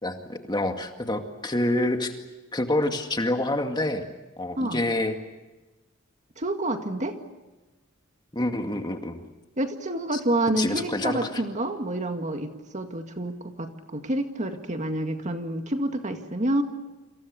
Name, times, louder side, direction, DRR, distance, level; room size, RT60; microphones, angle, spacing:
voice 1, 0.0-2.2 2.5-4.0 4.4-5.2 8.3-9.2 10.1-10.2 10.6-11.4, left 1 dB, 20° left, 5 dB, 2.2 m, -27 dB
voice 2, 6.4-7.2 9.6-16.6, right 1 dB, 35° right, 5 dB, 2.1 m, -28 dB
29.0 x 27.0 x 6.6 m, 1.1 s
head